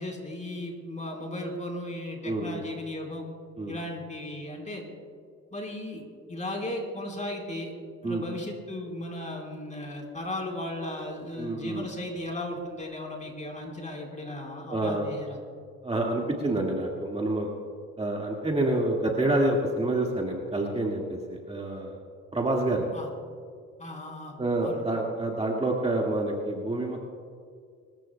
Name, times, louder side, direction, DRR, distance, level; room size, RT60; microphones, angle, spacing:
voice 1, 0.0-3.2 3.7-4.8 5.5-6.0 6.3-7.7 8.0-15.4 18.6-18.7 22.9-23.1 23.8-24.9, left 1 dB, 25° left, 0 dB, 4.3 m, -36 dB
voice 2, 2.2-2.6 3.6-3.8 8.0-8.2 11.4-11.9 14.7-15.1 15.8-17.5 18.0-22.0 22.3-22.9 24.4-27.0, right 2 dB, 20° right, -1 dB, 1.9 m, -28 dB
26.0 x 14.5 x 2.3 m, 2.2 s
cardioid pair, 90°, 30 cm